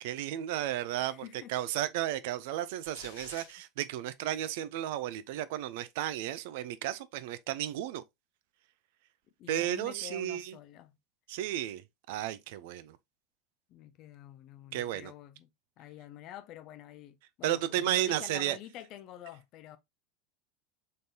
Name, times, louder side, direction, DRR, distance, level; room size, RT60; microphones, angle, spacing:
voice 1, 0.0-1.2 1.5-8.0 9.5-10.5 11.3-13.0 14.7-15.1 17.4-18.6, right 12 dB, 60° right, 0.4 m, -33 dB
voice 2, 1.0-1.6 9.4-11.0 13.7-15.5 15.8-19.8, left 12 dB, 45° left, 0.6 m, -48 dB
sound 1, 2.8-3.5, left 5 dB, 70° left, 1.3 m, -48 dB
3.8 x 3.6 x 2.8 m
figure-of-eight pair, 75°, 0 cm